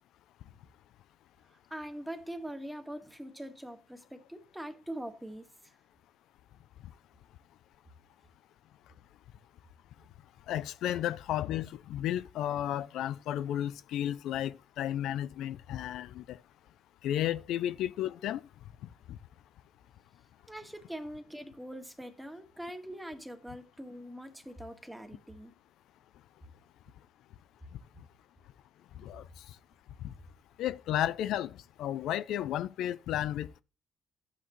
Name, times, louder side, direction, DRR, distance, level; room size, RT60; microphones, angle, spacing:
voice 1, 1.7-5.7 20.5-25.5, right 1 dB, 5° right, 1.7 m, -43 dB
voice 2, 10.5-16.4 17.0-18.4 19.1-19.2 29.0-29.6 30.0-30.1 30.6-33.6, left 12 dB, 85° left, 0.4 m, -33 dB
11.0 x 8.5 x 3.1 m
cardioid pair, 90°, 0 cm